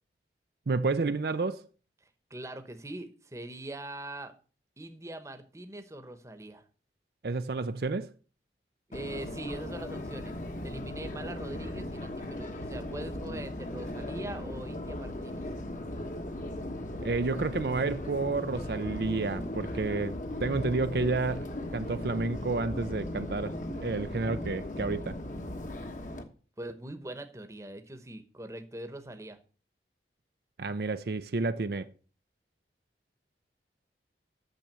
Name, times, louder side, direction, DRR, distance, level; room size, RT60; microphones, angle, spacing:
voice 1, 0.7-1.6 7.2-8.1 17.0-25.2 30.6-31.9, right 3 dB, 60° right, 0.5 m, -30 dB
voice 2, 2.3-4.3 4.8-6.6 8.9-10.3 10.6-15.5 25.8-25.9 26.6-29.4, right 1 dB, 15° right, 1.0 m, -42 dB
Subway metro underground, 8.9-26.2, left 1 dB, 45° left, 1.2 m, -37 dB
9.1 x 6.9 x 6.8 m
head